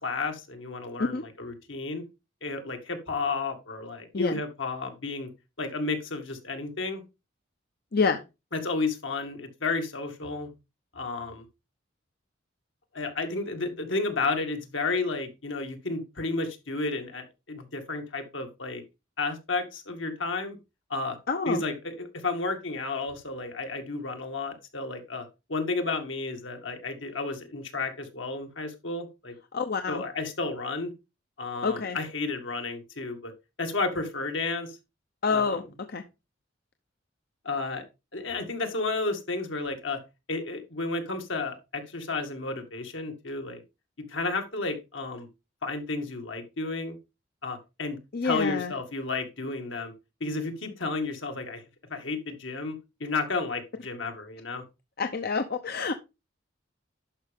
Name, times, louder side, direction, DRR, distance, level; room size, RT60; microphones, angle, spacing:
voice 1, 0.0-2.0 2.4-5.3 5.6-7.0 8.5-10.5 10.9-11.5 12.9-18.8 19.2-20.6 20.9-21.2 21.5-29.3 29.9-30.9 31.4-33.3 33.6-34.8 35.3-35.6 37.4-37.8 38.1-40.0 40.3-43.6 44.0-45.3 45.6-47.0 47.4-49.9 50.2-51.6 51.9-54.6, left 3 dB, 75° left, 5 dB, 2.2 m, -32 dB
voice 2, 21.3-21.6 29.5-30.0 31.6-32.0 35.2-35.6 35.9-36.0 48.1-48.7 55.0-55.9, left 5 dB, 55° left, 8 dB, 0.8 m, -27 dB
11.0 x 6.1 x 3.6 m, 0.25 s
head